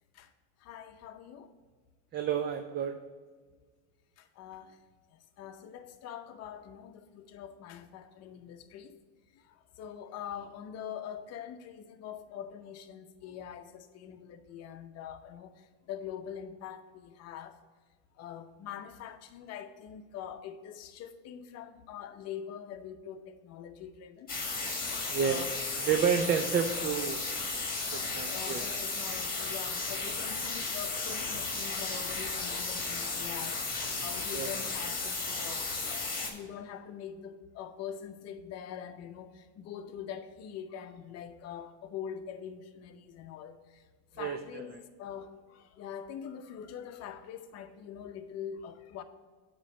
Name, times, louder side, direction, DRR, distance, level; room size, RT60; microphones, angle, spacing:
voice 1, 0.6-1.5 4.2-4.8 5.1-8.9 9.3-17.6 18.2-24.3 25.2-25.5 28.2-33.6 34.0-43.8 44.1-49.0, left 8 dB, 45° left, 0.8 m, -44 dB
voice 2, 2.1-3.0 25.1-25.5 25.7-27.2 27.9-28.6 34.3-34.5 44.2-44.6, right 7 dB, 30° right, 0.5 m, -30 dB
sound 1, 24.3-36.3, left 3 dB, 25° left, 1.7 m, -34 dB
8.2 x 3.1 x 6.2 m
supercardioid pair, 105°, 35 cm